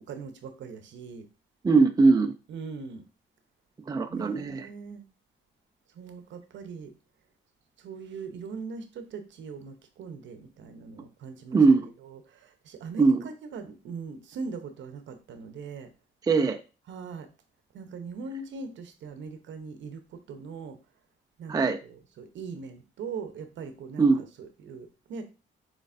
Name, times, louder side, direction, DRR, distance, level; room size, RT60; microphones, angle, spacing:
voice 1, 0.1-1.3 2.5-3.0 4.1-5.0 5.9-6.9 7.8-11.6 12.0-15.9 16.9-17.3 17.7-20.8 21.4-21.6 21.8-25.2, right 5 dB, 70° right, 0.8 m, -40 dB
voice 2, 1.6-2.3 3.9-4.7 11.5-11.9 13.0-13.3 16.3-16.6 21.5-21.8 24.0-24.2, right 4 dB, 20° right, 0.4 m, -21 dB
6.5 x 3.2 x 2.5 m
cardioid pair, 90°, 20 cm